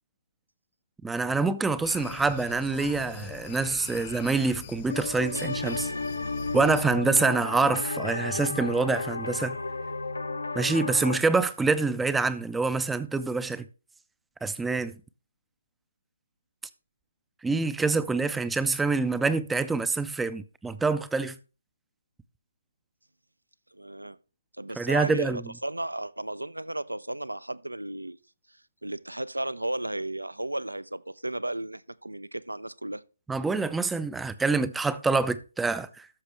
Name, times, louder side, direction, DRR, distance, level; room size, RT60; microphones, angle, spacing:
voice 1, 1.0-5.9 6.5-9.6 10.6-13.6 14.4-15.0 17.4-21.4 24.8-25.4 33.3-36.1, right 3 dB, 5° right, 0.4 m, -26 dB
sound 1, 1.8-6.8, left 9 dB, 35° left, 0.8 m, -43 dB
sound 2, 4.9-11.2, left 3 dB, 75° left, 0.6 m, -33 dB
voice 2, 23.7-24.2 24.6-28.2 28.8-33.0, right 1 dB, 85° right, 0.4 m, -34 dB
13.0 x 5.9 x 3.2 m
figure-of-eight pair, 140°, 0 cm